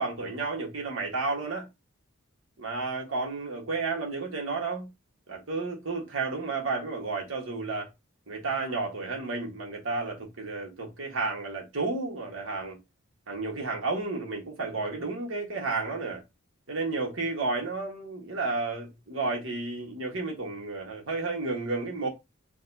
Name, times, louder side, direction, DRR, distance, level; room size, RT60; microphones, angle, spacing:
voice 1, 0.0-1.7 2.6-4.9 5.3-7.9 8.3-12.8 13.3-16.2 16.7-22.1, right 3 dB, 65° right, 1.3 m, -32 dB
5.1 x 2.4 x 2.6 m
head